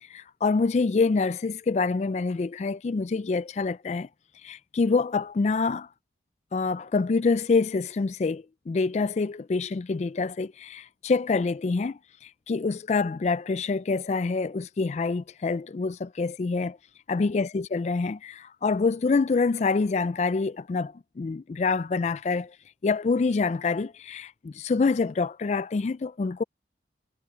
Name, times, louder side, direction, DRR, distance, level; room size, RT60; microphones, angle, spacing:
voice 1, 0.1-4.1 4.4-5.9 6.5-16.8 17.1-22.5 22.8-26.4, left 4 dB, 40° left, 0.3 m, -26 dB
head